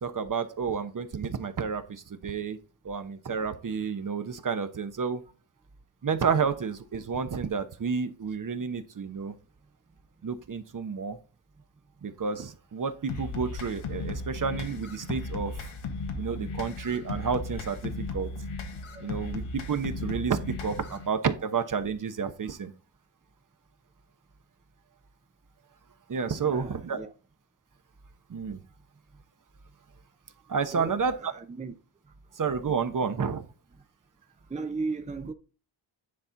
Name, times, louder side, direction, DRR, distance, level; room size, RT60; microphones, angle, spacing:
voice 1, 0.0-2.6 2.8-5.2 6.0-9.3 10.2-11.2 12.0-15.7 16.2-18.3 19.0-22.7 26.1-27.0 28.3-28.6 30.5-31.3 32.3-33.5, right 5 dB, 40° right, 1.0 m, -30 dB
sound 1, 13.1-21.1, left 3 dB, 85° left, 1.5 m, -36 dB
voice 2, 18.7-19.1 26.4-27.1 30.7-31.7 32.0-32.4 34.5-35.3, right 3 dB, 15° right, 0.7 m, -37 dB
9.9 x 4.3 x 3.9 m
cardioid pair, 85°, 47 cm